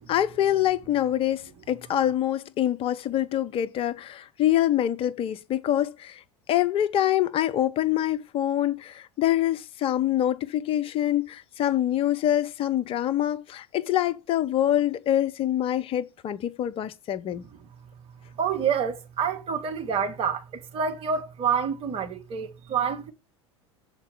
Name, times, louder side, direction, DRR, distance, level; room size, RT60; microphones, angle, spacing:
voice 1, 0.1-6.1 6.5-17.4, left 12 dB, 35° left, 0.6 m, -25 dB
voice 2, 18.4-23.1, right 7 dB, 40° right, 1.5 m, -28 dB
7.2 x 4.5 x 7.0 m
figure-of-eight pair, 75°, 15 cm